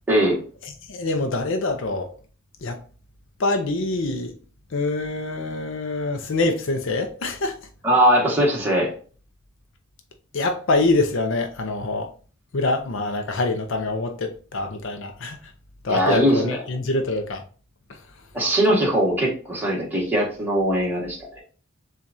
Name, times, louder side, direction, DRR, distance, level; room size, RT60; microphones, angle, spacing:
voice 1, 0.1-0.4 7.8-8.9 15.9-16.6 18.3-21.2, right 1 dB, 10° right, 1.5 m, -20 dB
voice 2, 0.9-2.1 2.6-2.8 3.4-4.3 4.7-7.6 10.3-12.1 12.5-15.4 15.8-17.4, left 2 dB, 65° left, 0.6 m, -25 dB
7.1 x 2.4 x 2.6 m
head